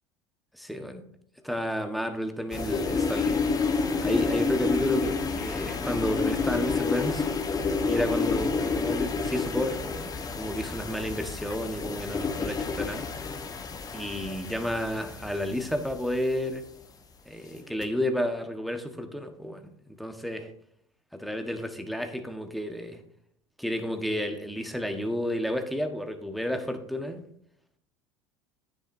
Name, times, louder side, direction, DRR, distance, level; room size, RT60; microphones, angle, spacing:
voice 1, 0.5-1.0 1.4-3.4 4.0-7.3 7.9-13.1 13.9-16.6 17.2-19.7 20.0-20.5 21.1-23.0 23.6-27.3, left 1 dB, ahead, 5 dB, 1.3 m, -31 dB
sound 1, 2.5-16.3 17.6-17.8, left 4 dB, 25° left, 1.1 m, -29 dB
10.5 x 9.4 x 2.7 m, 0.69 s
hypercardioid pair, 75°, 15 cm